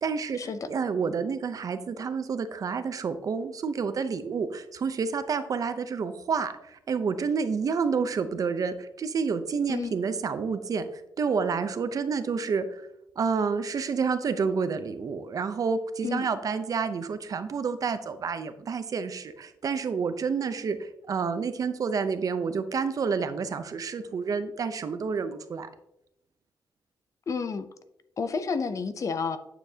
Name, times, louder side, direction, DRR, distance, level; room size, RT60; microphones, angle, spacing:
voice 1, 0.0-0.4 0.7-12.9 13.2-25.7, right 5 dB, 50° right, 11 dB, 0.6 m, -29 dB
voice 2, 27.3-27.7 28.2-29.4, left 5 dB, 45° left, 11 dB, 0.5 m, -30 dB
9.0 x 6.9 x 2.8 m, 0.84 s
wide cardioid pair, 145°, 8 cm